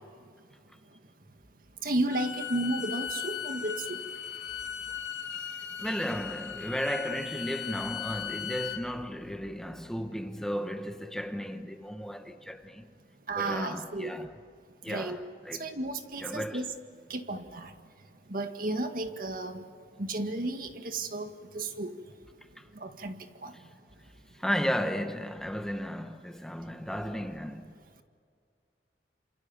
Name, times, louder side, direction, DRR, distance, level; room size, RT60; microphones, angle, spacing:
voice 1, 1.8-4.0 13.3-14.1 14.9-15.2 15.6-16.7 17.1-17.7 18.3-19.6 20.0-21.9 22.8-23.5, right 2 dB, 50° right, 1.9 m, -33 dB
Bowed string instrument, 2.1-8.8, left 8 dB, 90° left, 1.9 m, -37 dB
voice 2, 5.8-12.9 13.3-14.4 14.8-15.7 16.2-16.7 22.6-22.7 23.5-23.7 24.3-27.7, equal, 5° left, 1.0 m, -34 dB
28.0 x 27.0 x 7.2 m
head